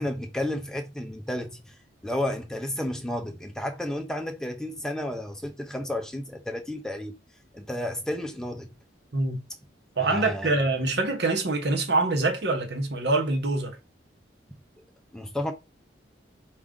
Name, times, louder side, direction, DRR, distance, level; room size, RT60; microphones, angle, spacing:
voice 1, 0.0-1.8 2.0-7.2 7.5-8.8 10.0-10.7 15.1-15.5, left 1 dB, 5° left, 0.5 m, -32 dB
voice 2, 10.0-13.8, right 2 dB, 60° right, 0.9 m, -25 dB
4.7 x 2.4 x 3.7 m
head